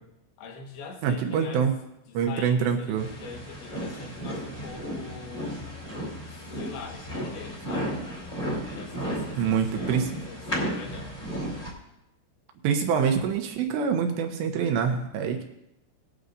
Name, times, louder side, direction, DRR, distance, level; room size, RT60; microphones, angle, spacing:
voice 1, 0.4-1.7 2.1-5.6 6.3-8.0 8.8-9.9 10.3-11.2, left 4 dB, 65° left, 2 dB, 2.9 m, -43 dB
voice 2, 1.0-1.7 2.1-3.1 9.4-10.1 12.6-15.4, right 7 dB, 75° right, 4 dB, 2.8 m, -25 dB
sound 1, 3.0-11.7, equal, 20° left, 1.5 m, -34 dB
19.0 x 9.7 x 2.6 m, 0.84 s
omnidirectional pair, 5.8 m